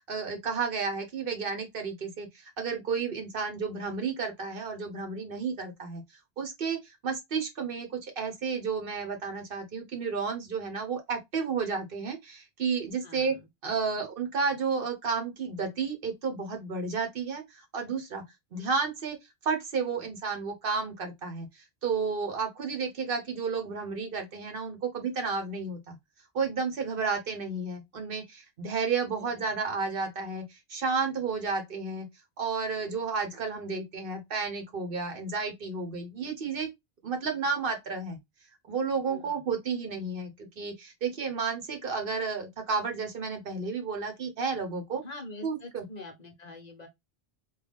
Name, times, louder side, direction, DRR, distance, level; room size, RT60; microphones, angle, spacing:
voice 1, 0.0-6.0 6.4-13.4 13.6-18.2 18.5-19.2 19.4-21.5 21.8-26.0 26.3-32.1 32.4-36.7 37.0-38.2 38.7-45.0 45.4-45.8, right 5 dB, 60° right, 1.0 m, -32 dB
voice 2, 13.0-13.4 29.1-29.5 39.1-39.4 45.0-46.9, left 2 dB, 45° left, 0.8 m, -45 dB
3.8 x 2.3 x 3.4 m
omnidirectional pair, 1.1 m